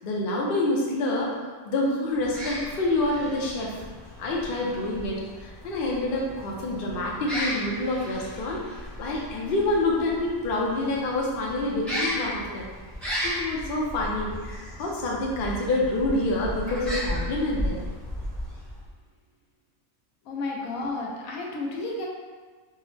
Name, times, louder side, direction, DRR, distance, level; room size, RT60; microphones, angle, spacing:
voice 1, 0.0-1.4 1.6-3.8 4.2-8.6 9.0-12.7 13.2-17.8, left 2 dB, 60° left, -2 dB, 0.6 m, -27 dB
sound 1, 2.1-18.9, equal, ahead, 0.5 m, -35 dB
voice 2, 20.2-22.1, left 2 dB, 80° left, -1 dB, 1.0 m, -32 dB
3.5 x 2.0 x 3.1 m, 1.4 s
omnidirectional pair, 1.5 m